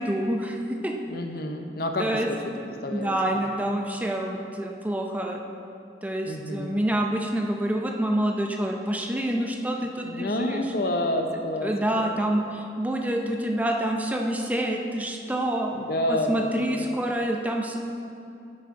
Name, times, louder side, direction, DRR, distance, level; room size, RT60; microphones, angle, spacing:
voice 1, 0.0-0.9 2.0-2.3 2.9-5.5 6.0-10.7 11.3-15.7 16.1-17.8, right 1 dB, 10° right, 1 dB, 0.5 m, -27 dB
voice 2, 1.1-2.4 2.6-3.4 6.2-6.7 10.1-12.2 15.7-16.8, left 1 dB, 55° left, 4 dB, 0.7 m, -29 dB
10.5 x 7.5 x 3.7 m, 2.6 s
head